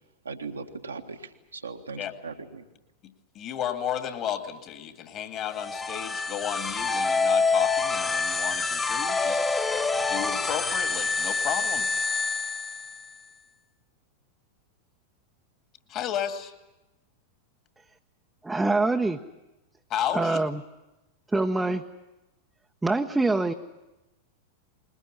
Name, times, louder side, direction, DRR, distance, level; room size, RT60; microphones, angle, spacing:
voice 1, 0.2-2.6, right 4 dB, 75° right, 3 dB, 1.7 m, -39 dB
voice 2, 3.0-9.4 10.1-11.9 15.9-16.5 19.9-20.4, left 9 dB, 35° left, 8 dB, 2.1 m, -33 dB
sound 1, 5.5-13.2, left 4 dB, 15° left, 1.5 m, -27 dB
voice 3, 18.4-19.2 20.1-20.6 21.3-21.8 22.8-23.5, right 2 dB, 5° right, 3 dB, 0.8 m, -24 dB
21.0 x 20.5 x 9.8 m, 0.99 s
figure-of-eight pair, 90°, 0 cm